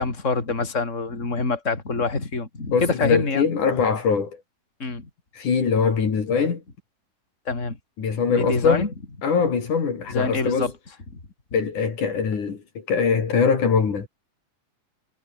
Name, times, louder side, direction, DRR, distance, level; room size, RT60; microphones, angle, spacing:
voice 1, 0.0-3.5 4.8-5.1 7.5-7.8 8.3-8.9 10.1-10.7, left 3 dB, 20° left, 4.4 m, -25 dB
voice 2, 2.7-4.4 5.3-6.6 8.0-8.9 9.2-10.7 11.5-14.1, left 5 dB, 65° left, 5.0 m, -22 dB
omnidirectional pair, 3.8 m